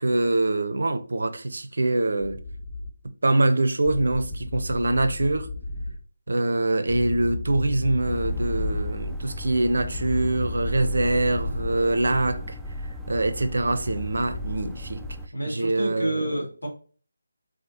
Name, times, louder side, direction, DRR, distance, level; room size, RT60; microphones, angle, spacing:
voice 1, 0.0-2.4 3.2-5.5 6.3-12.6 13.1-15.0 15.5-16.4, right 2 dB, 55° right, 0.6 m, -24 dB
sound 1, 2.2-2.9 3.8-6.0 6.9-8.9 9.8-11.8, left 2 dB, 25° left, 0.8 m, -32 dB
sound 2, 8.0-15.3, equal, ahead, 0.3 m, -35 dB
voice 2, 15.3-16.7, right 1 dB, 75° left, 2.3 m, -29 dB
5.0 x 3.8 x 2.8 m
figure-of-eight pair, 155°, 0 cm